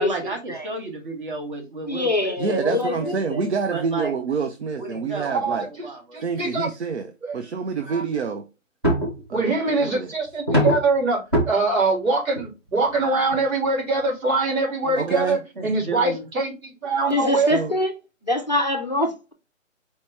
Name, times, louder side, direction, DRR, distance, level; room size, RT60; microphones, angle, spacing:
voice 1, 0.0-2.6 3.0-3.2 3.7-4.1 4.8-6.2 14.8-15.2 15.6-16.3, right 3 dB, 40° right, 1.2 m, -33 dB
voice 2, 1.9-3.5 17.1-17.9 18.2-19.3, left 1 dB, 35° left, 0.4 m, -24 dB
voice 3, 2.4-5.7 6.2-8.5 9.3-10.1 15.0-15.4 17.4-17.7, right 5 dB, 55° right, 0.5 m, -27 dB
voice 4, 5.2-5.9 6.1-6.7 7.3-7.4 7.9-8.0 9.3-11.2 11.5-17.5, right 3 dB, 80° right, 2.5 m, -23 dB
sound 1, 8.8-9.2 10.5-11.0 11.3-11.5 12.4-12.5 12.9-13.0 13.3-13.4 14.0-14.1, equal, 20° right, 0.7 m, -20 dB
4.3 x 2.9 x 3.3 m
hypercardioid pair, 170°, 40 cm